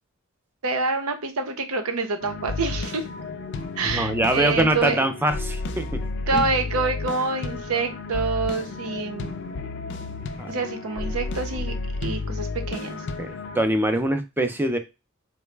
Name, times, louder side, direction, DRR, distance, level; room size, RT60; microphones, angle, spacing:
voice 1, 0.6-3.1 3.8-5.0 6.3-9.6 10.5-11.7 12.0-13.0, right 4 dB, 80° right, 6 dB, 0.7 m, -27 dB
sound 1, 2.2-13.7, left 3 dB, 55° left, 0.4 m, -32 dB
voice 2, 3.8-6.0 6.3-6.5 10.4-10.5 13.2-14.8, right 1 dB, 10° right, 8 dB, 0.4 m, -24 dB
3.9 x 2.1 x 3.2 m, 0.26 s
head